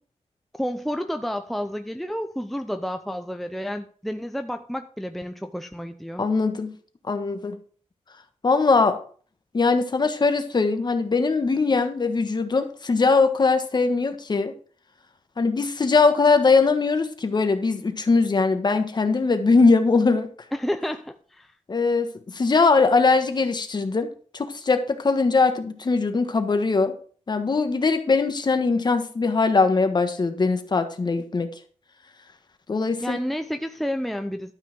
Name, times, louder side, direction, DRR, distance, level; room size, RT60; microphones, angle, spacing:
voice 1, 0.6-6.3 20.5-21.5 33.0-34.5, equal, ahead, 7 dB, 0.6 m, -30 dB
voice 2, 6.2-6.7 7.0-7.6 8.4-9.0 9.5-14.5 15.4-20.3 21.7-26.9 27.3-31.5 32.7-33.2, left 4 dB, 35° left, 8 dB, 1.4 m, -21 dB
12.0 x 5.6 x 6.0 m, 0.43 s
wide cardioid pair, 150°, 12 cm